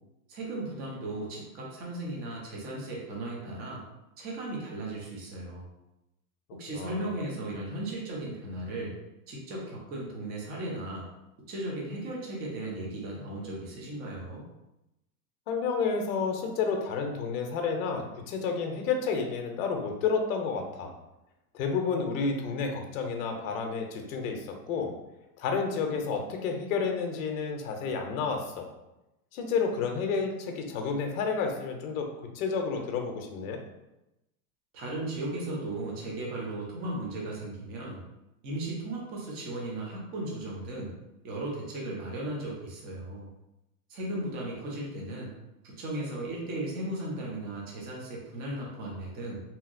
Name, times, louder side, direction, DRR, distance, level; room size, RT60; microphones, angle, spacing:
voice 1, 0.3-3.8 4.2-5.7 6.5-8.9 9.3-11.0 11.5-14.5 34.7-38.0 38.4-40.9 41.2-43.3 43.9-45.3 45.6-49.4, right 1 dB, 20° right, -2 dB, 0.5 m, -36 dB
voice 2, 6.7-7.1 15.5-20.9 21.5-24.9 25.4-28.7 29.3-32.1 32.3-33.6, left 5 dB, 60° left, 3 dB, 0.7 m, -30 dB
2.8 x 2.7 x 2.5 m, 0.94 s
supercardioid pair, 145°, 47 cm